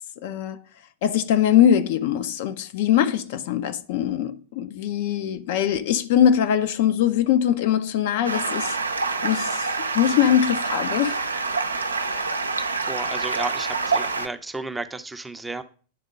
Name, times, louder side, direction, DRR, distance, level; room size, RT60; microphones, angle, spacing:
voice 1, 0.2-0.6 1.0-8.8 9.2-9.7 9.9-11.2, left 10 dB, 50° left, 0.5 m, -22 dB
Stream, 8.2-14.3, right 4 dB, 75° right, 0.5 m, -26 dB
voice 2, 12.5-15.6, right 3 dB, 10° right, 0.6 m, -33 dB
9.5 x 3.6 x 5.1 m
figure-of-eight pair, 90°, 0 cm